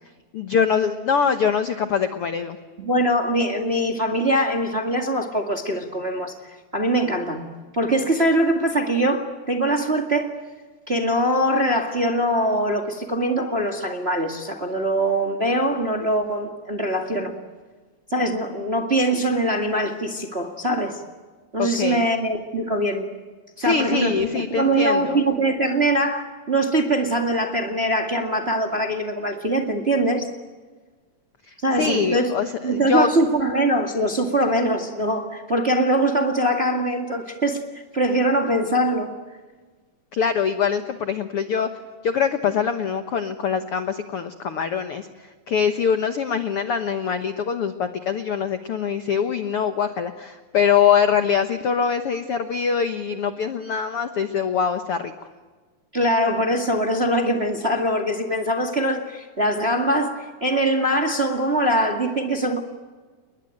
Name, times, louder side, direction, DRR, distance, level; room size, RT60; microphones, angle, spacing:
voice 1, 0.3-2.6 21.6-22.1 23.6-25.2 31.8-33.1 40.1-41.7 42.0-45.1 45.5-55.1, left 7 dB, 75° left, 8 dB, 1.3 m, -23 dB
voice 2, 2.8-6.3 6.7-10.3 10.9-17.3 18.1-21.0 21.5-23.0 23.6-30.3 31.6-32.4 32.6-37.6 37.9-39.1 55.9-62.6, right 1 dB, 25° right, 4 dB, 1.3 m, -22 dB
29.0 x 21.5 x 9.1 m, 1.4 s
omnidirectional pair, 4.3 m